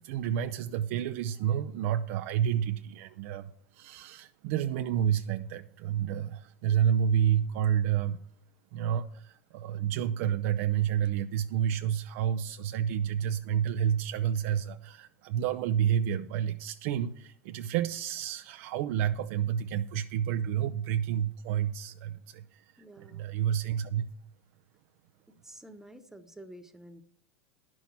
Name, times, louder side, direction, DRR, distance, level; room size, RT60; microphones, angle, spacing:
voice 1, 0.0-8.2 8.7-24.1, right 9 dB, 65° right, 8 dB, 0.5 m, -30 dB
voice 2, 22.8-23.3 25.4-27.0, right 1 dB, 5° right, 7 dB, 1.0 m, -49 dB
10.0 x 6.1 x 7.0 m, 0.63 s
supercardioid pair, 110°, 8 cm